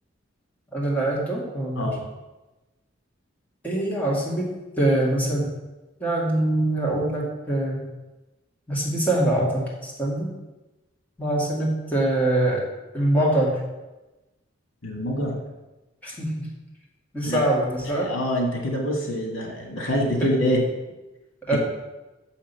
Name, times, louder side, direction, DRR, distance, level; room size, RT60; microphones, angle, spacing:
voice 1, 0.7-1.9 3.6-4.5 4.8-5.5 6.0-7.8 8.7-10.3 11.2-12.6 12.9-13.6 16.0-16.5 17.1-18.1 21.5-21.6, right 1 dB, 10° left, -5 dB, 2.1 m, -23 dB
voice 2, 14.8-15.4 17.3-17.5 17.8-20.7 21.5-21.6, equal, 90° left, 0 dB, 2.1 m, -25 dB
6.5 x 5.7 x 6.8 m, 1.1 s
head